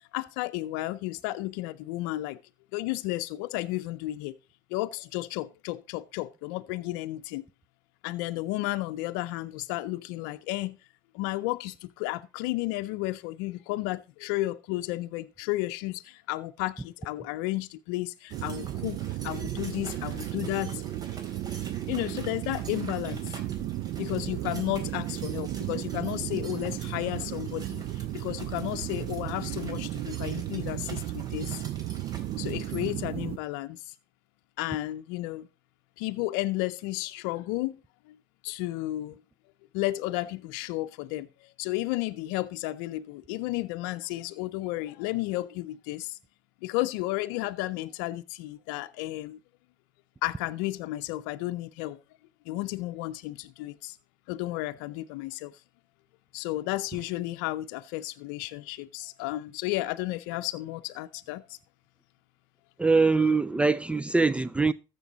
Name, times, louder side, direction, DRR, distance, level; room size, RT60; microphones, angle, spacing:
voice 1, 0.1-2.4 2.7-4.4 4.7-7.4 8.0-10.8 11.1-19.0 19.2-20.8 21.9-23.3 24.0-27.8 28.1-31.6 32.4-33.8 34.6-35.5 36.0-37.8 38.4-39.2 39.7-41.3 41.6-46.2 46.6-49.4 50.2-52.0 52.5-53.9 54.3-55.5 56.3-61.4, left 18 dB, 80° left, 0.6 m, -32 dB
sound 1, 18.3-32.9, right 3 dB, 35° right, 3.7 m, -48 dB
sound 2, 18.3-33.4, right 13 dB, 60° right, 0.6 m, -34 dB
voice 2, 62.8-64.7, right 3 dB, 10° right, 0.4 m, -23 dB
14.0 x 7.0 x 3.9 m
supercardioid pair, 85°, 11 cm